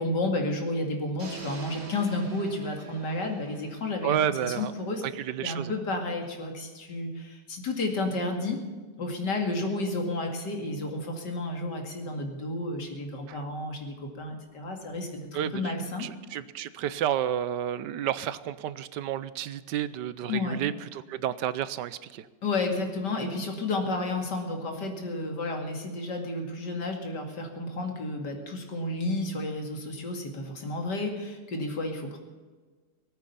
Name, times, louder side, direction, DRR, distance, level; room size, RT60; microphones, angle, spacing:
voice 1, 0.0-5.0 5.4-8.6 9.0-16.1 20.3-20.6 22.4-32.2, left 2 dB, 75° left, 3 dB, 2.9 m, -31 dB
sound 1, 1.2-5.2, right 5 dB, 45° right, 2.2 m, -46 dB
voice 2, 4.0-4.7 5.0-5.7 13.3-13.4 15.3-15.7 16.0-22.3, right 10 dB, 80° right, 15 dB, 1.3 m, -31 dB
19.5 x 8.9 x 7.0 m, 1.4 s
omnidirectional pair, 1.9 m